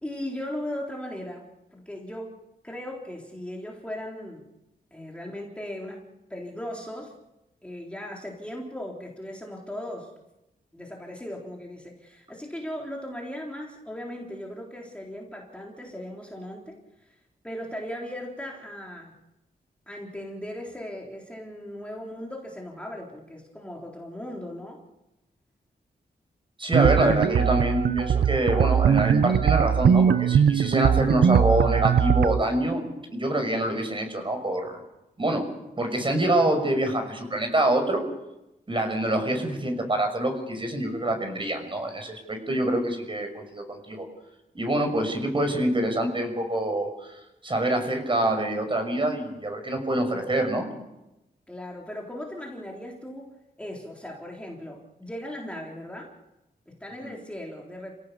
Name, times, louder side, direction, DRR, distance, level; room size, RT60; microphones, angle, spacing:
voice 1, 0.0-2.4 2.6-4.5 4.9-6.0 6.3-7.1 7.6-10.1 10.7-17.2 17.4-19.1 19.9-24.8 51.5-56.1 56.7-57.9, left 1 dB, 5° left, -2 dB, 3.9 m, -38 dB
voice 2, 26.6-32.8 33.1-34.8 35.2-35.4 35.8-38.0 38.7-44.1 44.5-47.1 47.4-50.7 57.0-57.1, right 1 dB, 30° right, 4 dB, 6.3 m, -25 dB
sound 1, 26.7-32.4, right 8 dB, 80° right, 0.7 m, -21 dB
29.0 x 17.5 x 6.9 m, 0.93 s
wide cardioid pair, 100°, 17 cm